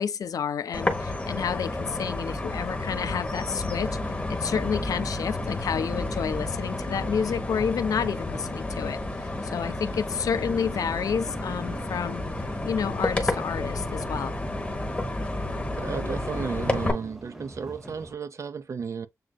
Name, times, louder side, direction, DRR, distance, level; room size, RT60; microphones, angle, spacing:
voice 1, 0.0-4.0 4.3-9.0 9.4-12.3 12.6-14.4, left 7 dB, 80° left, 0.4 m, -30 dB
sound 1, 0.7-16.9, left 2 dB, 20° left, 1.1 m, -31 dB
sound 2, 1.2-18.2, right 1 dB, 5° right, 0.6 m, -45 dB
sound 3, 10.3-17.4, right 4 dB, 90° right, 1.7 m, -49 dB
voice 2, 15.7-19.1, right 5 dB, 55° right, 0.5 m, -33 dB
7.5 x 2.6 x 2.3 m
wide cardioid pair, 130°, 6 cm